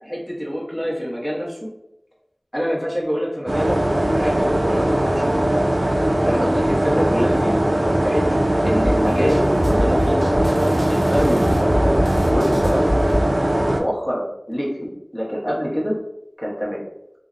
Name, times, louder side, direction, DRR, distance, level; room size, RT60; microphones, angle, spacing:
voice 1, 0.0-1.6 2.5-3.8 4.1-5.4 6.2-7.6 8.0-10.3 10.9-12.0 12.3-12.9 13.7-16.0 16.4-16.8, equal, 20° left, -5 dB, 0.8 m, -25 dB
sound 1, 3.5-13.8, right 1 dB, 65° right, 0.3 m, -20 dB
sound 2, 8.8-13.2, equal, 20° right, 0.9 m, -24 dB
2.6 x 2.1 x 2.4 m, 0.82 s
wide cardioid pair, 45°, 0 cm